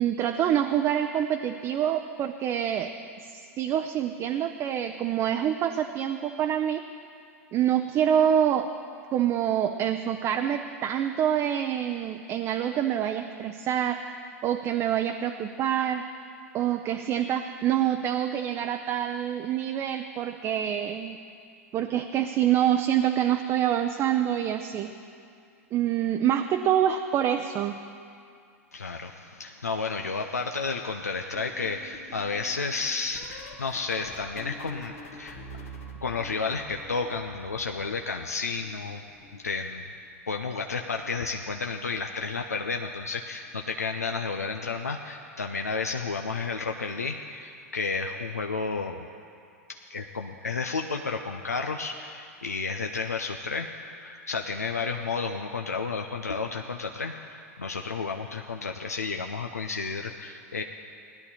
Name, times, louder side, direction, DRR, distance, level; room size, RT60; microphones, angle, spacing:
voice 1, 0.0-2.9 3.2-6.8 7.5-8.7 9.1-14.0 14.4-16.0 16.5-21.2 21.7-24.9 25.7-27.8, right 10 dB, 35° right, 6 dB, 0.6 m, -26 dB
voice 2, 28.7-35.4 36.0-39.0 39.3-39.8 40.3-49.1 49.7-53.7 54.0-60.6, left 4 dB, 90° left, 4 dB, 0.6 m, -32 dB
sound 1, 31.3-38.1 38.4-40.0 41.0-41.3 41.6-41.9 43.5-43.7 44.1-44.3 45.9-46.0, equal, 70° left, 1.7 m, -46 dB
17.5 x 11.0 x 4.3 m, 2.4 s
hypercardioid pair, 95°, 8 cm